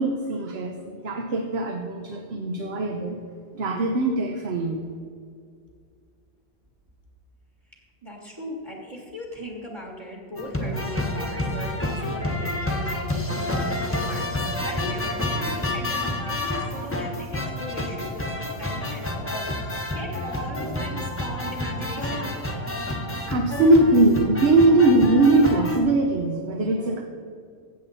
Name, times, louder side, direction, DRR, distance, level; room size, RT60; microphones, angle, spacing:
voice 1, 0.0-3.2 3.5-4.8 23.3-27.0, right 2 dB, 65° right, 3 dB, 1.1 m, -21 dB
voice 2, 8.0-22.3, equal, 25° right, 0 dB, 1.5 m, -38 dB
sound 1, 10.4-25.8, left 1 dB, 10° left, 1.0 m, -29 dB
15.5 x 6.9 x 4.1 m, 2.2 s
omnidirectional pair, 1.1 m